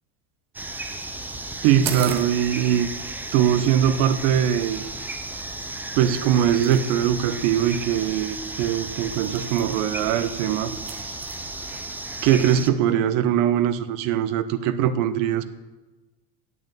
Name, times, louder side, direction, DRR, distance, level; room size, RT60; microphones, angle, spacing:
sound 1, 0.5-12.7, right 2 dB, 5° right, 0.4 m, -34 dB
voice 1, 1.6-2.9 3.3-4.9 6.0-10.7 12.2-15.4, right 10 dB, 65° right, 0.9 m, -21 dB
sound 2, 1.8-11.4, right 9 dB, 90° right, 1.3 m, -41 dB
8.2 x 7.2 x 8.4 m
supercardioid pair, 130°, 39 cm